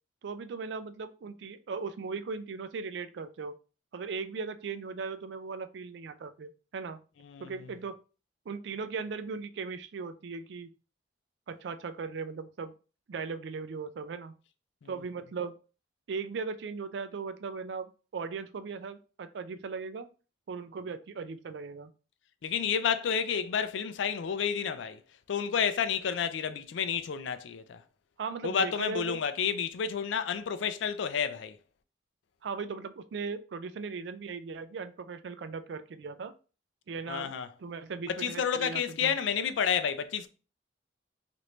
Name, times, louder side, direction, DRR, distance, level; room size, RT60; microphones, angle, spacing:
voice 1, 0.2-3.5 3.9-7.0 7.4-8.0 8.5-10.7 11.5-12.7 13.1-14.4 14.9-15.5 16.1-17.9 18.1-20.1 20.5-21.9 28.2-29.2 32.4-36.3 36.9-37.3 37.6-39.2, right 5 dB, 70° right, 0.4 m, -38 dB
voice 2, 22.4-25.0 25.3-27.8 28.4-31.6 37.1-37.5 38.1-40.3, left 7 dB, 85° left, 0.4 m, -30 dB
3.0 x 2.5 x 3.1 m
head